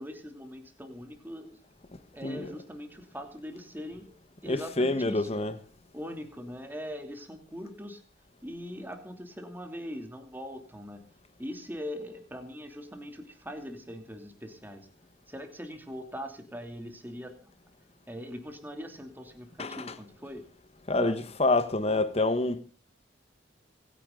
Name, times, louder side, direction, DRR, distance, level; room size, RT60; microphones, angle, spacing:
voice 1, 0.0-1.6 2.1-4.2 4.4-5.3 5.9-8.0 8.4-11.0 11.4-14.9 15.3-17.5 18.1-20.4 21.0-21.3, equal, 10° right, 2.8 m, -41 dB
voice 2, 2.2-2.5 4.4-5.6 19.6-20.0 20.9-22.6, left 2 dB, 35° left, 1.4 m, -27 dB
26.0 x 10.0 x 3.9 m
head